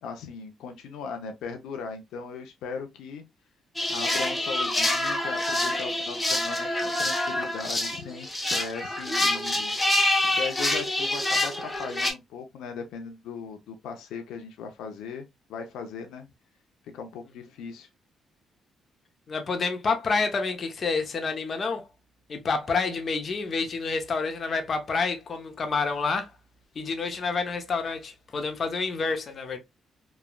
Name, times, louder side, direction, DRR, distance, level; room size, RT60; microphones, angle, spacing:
voice 1, 0.0-3.2 3.9-9.7 10.2-16.3 16.9-17.9, left 5 dB, 85° left, 0.6 m, -38 dB
sound 1, 3.8-12.1, left 1 dB, 10° left, 0.9 m, -26 dB
voice 2, 19.3-21.9 22.3-26.3 26.8-29.6, left 4 dB, 45° left, 0.7 m, -28 dB
3.1 x 2.3 x 2.2 m
cardioid pair, 90°, 0 cm